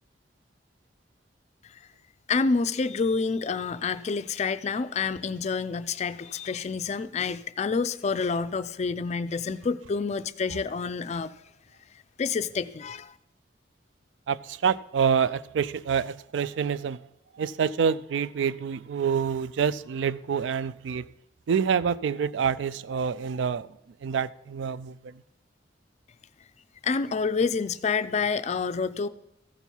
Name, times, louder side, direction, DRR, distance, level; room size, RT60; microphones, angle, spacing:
voice 1, 2.3-11.3 12.2-13.1 26.8-29.1, left 4 dB, 35° left, 0.4 m, -28 dB
voice 2, 14.3-17.0 17.4-21.1 21.5-23.7 24.0-25.0, right 7 dB, 80° right, 0.4 m, -27 dB
14.5 x 5.4 x 4.5 m
head